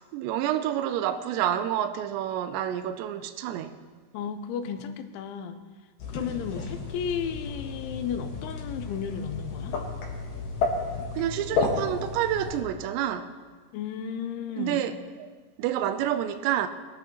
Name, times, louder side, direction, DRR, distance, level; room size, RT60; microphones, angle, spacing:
voice 1, 0.0-3.7 11.1-13.3 14.6-15.3 15.6-16.7, right 11 dB, 85° right, 2.8 m, -28 dB
voice 2, 4.1-5.6 6.1-9.8 13.7-14.8, left 7 dB, 90° left, 3.2 m, -33 dB
sound 1, 6.0-12.6, left 4 dB, 65° left, 3.2 m, -32 dB
21.0 x 11.0 x 3.0 m
omnidirectional pair, 5.2 m